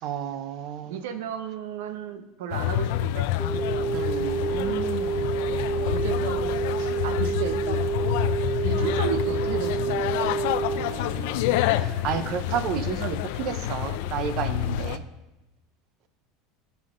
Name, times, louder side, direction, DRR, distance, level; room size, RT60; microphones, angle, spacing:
voice 1, 0.0-1.0 3.9-5.3 10.8-15.0, right 8 dB, 45° right, 12 dB, 0.6 m, -32 dB
voice 2, 0.9-3.2 5.5-7.8 8.6-10.3, right 7 dB, 85° right, 9 dB, 1.0 m, -34 dB
sound 1, 2.5-15.0, left 12 dB, 65° left, 0.4 m, -28 dB
sound 2, 3.4-10.8, right 5 dB, 30° right, 1.4 m, -28 dB
15.0 x 5.7 x 3.8 m, 1.0 s
supercardioid pair, 165°, 0 cm